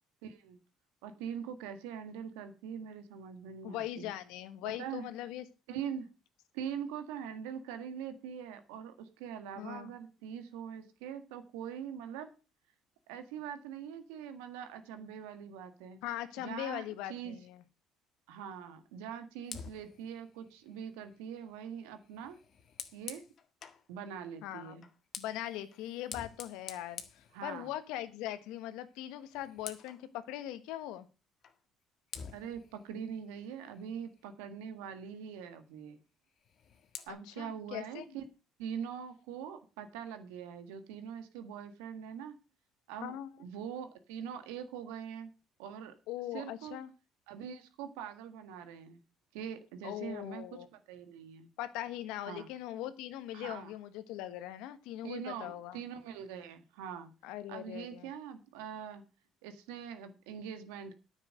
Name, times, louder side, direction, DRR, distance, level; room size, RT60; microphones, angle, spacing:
voice 1, 0.2-0.6 1.0-4.1 4.6-5.1 5.7-6.1 6.5-12.3 13.1-16.0 16.4-17.4 18.3-22.4 22.9-23.2 23.9-24.9 27.3-27.7 32.3-36.0 37.1-38.2 38.6-42.4 42.9-45.3 45.6-45.9 46.3-46.8 47.3-49.0 49.3-50.4 50.7-51.5 52.3-52.5 53.3-53.7 55.0-57.1 57.5-59.0 59.4-60.9, right 8 dB, 85° right, 9 dB, 1.6 m, -43 dB
voice 2, 3.6-5.4 9.6-9.9 16.0-17.6 24.4-24.8 25.2-31.1 37.1-38.2 43.0-43.3 46.1-46.9 49.8-50.7 51.6-55.8 57.2-58.1, left 13 dB, 80° left, 12 dB, 1.3 m, -41 dB
Fire, 19.4-23.9 24.8-28.0 28.4-28.6 29.0-30.1 31.4-31.6 32.1-34.4 36.3-37.1, left 7 dB, 55° left, 1.7 m, -49 dB
9.8 x 7.3 x 6.5 m, 0.32 s
supercardioid pair, 75°, 0 cm